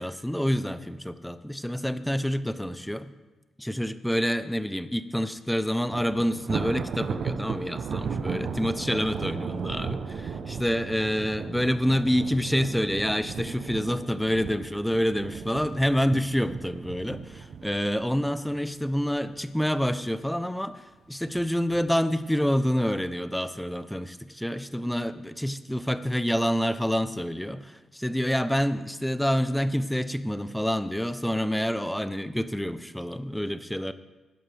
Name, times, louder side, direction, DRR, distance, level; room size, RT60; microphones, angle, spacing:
voice 1, 0.0-3.1 3.6-33.9, equal, 5° left, 12 dB, 0.8 m, -27 dB
Thunder, 5.9-19.2 19.6-19.9 20.3-20.4 21.2-21.8, right 6 dB, 65° right, 0.9 m, -35 dB
16.5 x 11.0 x 3.5 m, 1.2 s
supercardioid pair, 60°, 0 cm